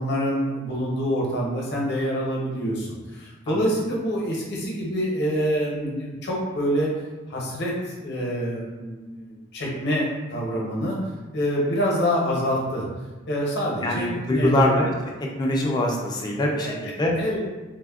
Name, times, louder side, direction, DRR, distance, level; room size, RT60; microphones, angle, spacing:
voice 1, 0.0-6.9 7.3-11.0 11.3-12.9 13.3-14.5 16.6-17.4, equal, 55° left, -3 dB, 0.7 m, -26 dB
voice 2, 13.8-14.9 15.4-17.1, left 1 dB, 20° left, -1 dB, 0.3 m, -23 dB
3.3 x 2.1 x 2.3 m, 1.2 s
head